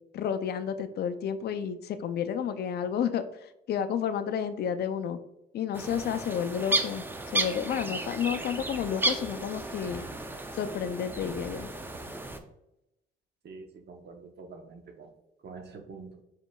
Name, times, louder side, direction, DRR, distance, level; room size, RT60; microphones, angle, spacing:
voice 1, 0.1-5.2 5.5-7.0 7.3-10.1 10.5-11.7, left 8 dB, 55° left, 11 dB, 0.4 m, -31 dB
sound 1, 5.7-12.4, right 1 dB, 10° right, 0.5 m, -33 dB
voice 2, 13.4-15.1 15.4-16.2, right 4 dB, 55° right, 4 dB, 0.8 m, -46 dB
5.1 x 3.7 x 2.3 m, 0.86 s
cardioid pair, 90°, 20 cm